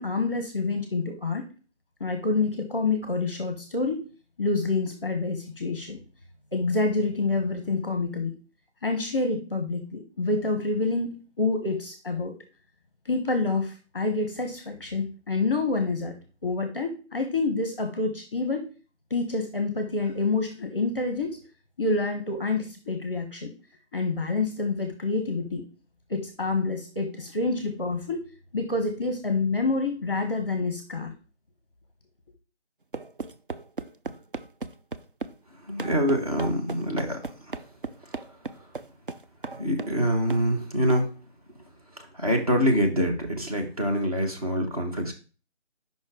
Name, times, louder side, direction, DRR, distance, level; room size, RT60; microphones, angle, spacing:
voice 1, 0.0-1.5 2.0-4.1 4.4-6.0 6.5-8.3 8.8-12.3 13.0-16.2 16.4-18.7 19.1-21.4 21.8-23.5 23.9-25.7 26.1-28.2 28.5-31.1, left 3 dB, 25° left, 5 dB, 0.8 m, -27 dB
sound 1, 32.9-35.4 35.8-40.0 40.3-40.5 40.9-41.1, right 4 dB, 50° right, 0.4 m, -36 dB
voice 2, 35.5-37.6 38.0-38.2 38.5-38.7 39.6-41.1 41.5-41.7 41.9-45.1, equal, 35° right, 3 dB, 1.2 m, -26 dB
5.3 x 4.4 x 4.7 m, 0.34 s
figure-of-eight pair, 160°, 34 cm